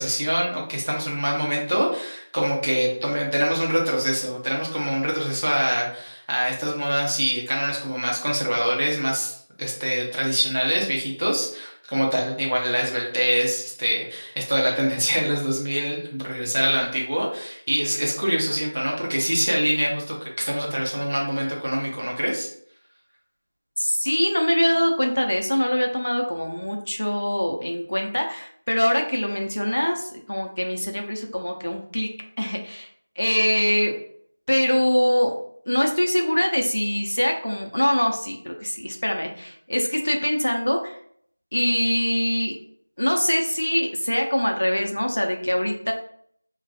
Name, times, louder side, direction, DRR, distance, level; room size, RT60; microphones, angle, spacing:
voice 1, 0.0-22.5, equal, 40° right, -2 dB, 0.7 m, -24 dB
voice 2, 23.8-32.1 32.4-32.9 33.2-33.9 34.5-35.3 35.7-41.0 41.5-42.6 43.0-45.9, equal, 55° left, 2 dB, 0.5 m, -23 dB
2.2 x 2.2 x 2.7 m, 0.63 s
figure-of-eight pair, 180°, 0 cm